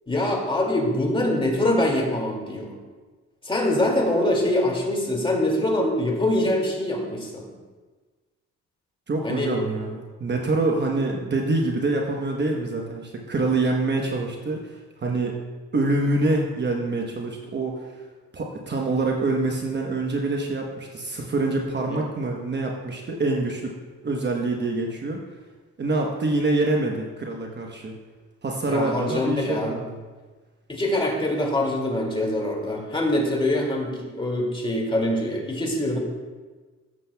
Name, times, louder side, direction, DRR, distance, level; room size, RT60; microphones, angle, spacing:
voice 1, 0.1-2.7 3.4-7.4 9.2-9.6 21.9-22.0 28.7-29.7 30.7-36.0, left 1 dB, 15° left, -1 dB, 2.3 m, -24 dB
voice 2, 9.1-15.3 15.7-18.0 18.3-23.7 24.0-25.2 25.8-27.9 28.4-30.0, right 2 dB, 35° right, 0 dB, 1.0 m, -25 dB
14.5 x 7.5 x 2.3 m, 1.4 s
cardioid pair, 90°, 30 cm